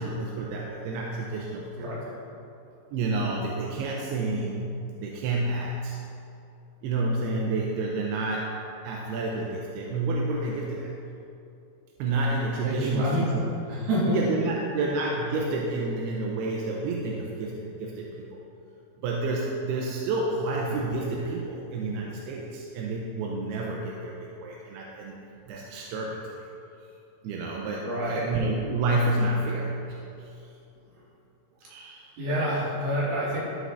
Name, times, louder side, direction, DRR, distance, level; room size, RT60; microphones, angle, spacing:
voice 1, 0.0-1.9 2.9-6.0 6.8-8.6 8.8-10.9 12.0-13.5 14.1-18.3 19.0-25.2 25.5-26.3 27.2-30.3 31.7-32.1, right 2 dB, 90° right, -2 dB, 2.7 m, -29 dB
voice 2, 1.8-2.1 12.6-13.3 13.7-14.2 27.8-28.3 31.6-31.7 32.2-33.4, equal, 70° right, -7 dB, 3.8 m, -27 dB
15.5 x 5.5 x 2.5 m, 2.7 s
omnidirectional pair, 4.5 m